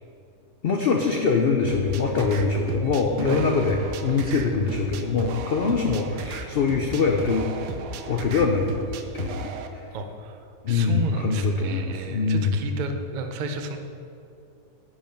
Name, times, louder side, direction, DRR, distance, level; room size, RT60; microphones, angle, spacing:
voice 1, 0.6-7.5 8.1-8.7 9.1-9.5 10.6-12.5, left 4 dB, 80° left, 3 dB, 0.5 m, -23 dB
sound 1, 1.7-9.7, right 5 dB, 90° right, 1.2 m, -36 dB
voice 2, 9.9-10.4 10.7-13.8, right 2 dB, 70° right, 6 dB, 0.4 m, -32 dB
10.0 x 4.9 x 5.2 m, 2.7 s
omnidirectional pair, 1.7 m